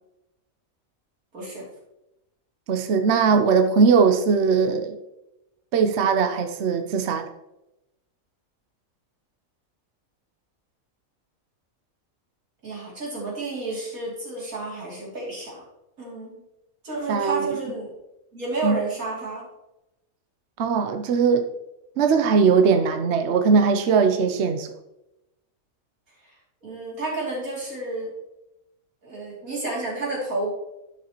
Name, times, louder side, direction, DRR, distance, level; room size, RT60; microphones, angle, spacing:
voice 1, 1.3-1.6 12.6-15.6 16.0-16.4 16.8-17.9 18.3-19.5 26.2-26.3 26.6-28.1 29.0-30.5, right 2 dB, 85° right, -4 dB, 3.4 m, -31 dB
voice 2, 2.7-5.0 5.7-7.2 17.1-17.5 18.6-18.8 20.6-21.5 22.0-24.7, right 5 dB, 60° right, 6 dB, 0.9 m, -20 dB
11.5 x 6.2 x 3.0 m, 0.90 s
omnidirectional pair, 1.4 m